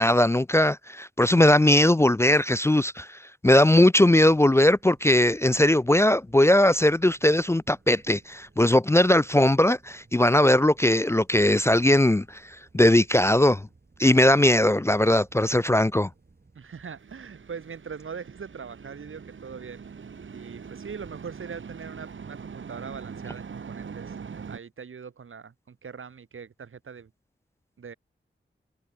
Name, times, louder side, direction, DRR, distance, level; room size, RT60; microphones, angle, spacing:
voice 1, 0.0-12.4 12.7-13.6 14.0-16.1, left 1 dB, 15° left, 0.4 m, -19 dB
sound 1, 4.2-21.5, right 3 dB, 50° right, 7.2 m, -58 dB
voice 2, 16.5-19.9 20.3-24.1 24.5-27.1 27.8-27.9, right 6 dB, 90° right, 2.6 m, -41 dB
sound 2, 16.8-24.6, right 6 dB, 70° right, 1.3 m, -42 dB
cardioid pair, 60°, 21 cm